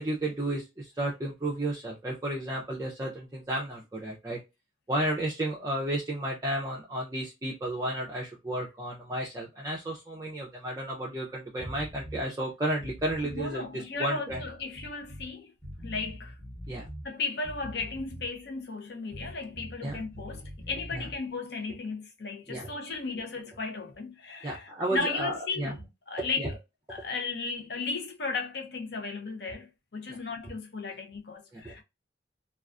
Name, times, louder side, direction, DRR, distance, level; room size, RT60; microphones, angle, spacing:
voice 1, 0.0-4.4 4.9-14.4 16.7-16.9 19.8-20.0 20.9-21.1 22.5-22.7 23.2-23.3 24.4-25.7 26.4-26.5 30.1-30.2 31.5-31.7, right 1 dB, 20° right, 0.4 m, -32 dB
sound 1, 11.6-12.3 12.7-13.5 14.3-15.3 15.6-17.1 17.4-18.4 19.1-21.2, equal, 5° left, 0.9 m, -43 dB
voice 2, 13.2-15.5 15.8-16.4 17.0-25.8 26.1-26.5 26.9-31.8, left 4 dB, 60° left, 0.6 m, -35 dB
2.3 x 2.3 x 2.3 m
head